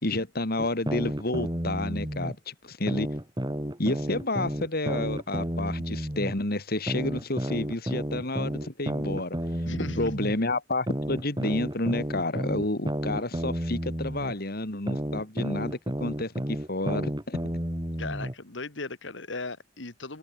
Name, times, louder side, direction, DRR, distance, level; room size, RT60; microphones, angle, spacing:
voice 1, 0.0-3.1 3.8-9.3 10.0-17.4, left 2 dB, 55° left, 3.0 m, -30 dB
sound 1, 0.6-2.3 2.9-6.3 6.9-10.3 10.9-14.3 14.9-18.3, equal, 20° right, 2.7 m, -31 dB
voice 2, 9.7-10.1 18.0-20.2, left 3 dB, 75° left, 2.1 m, -37 dB
head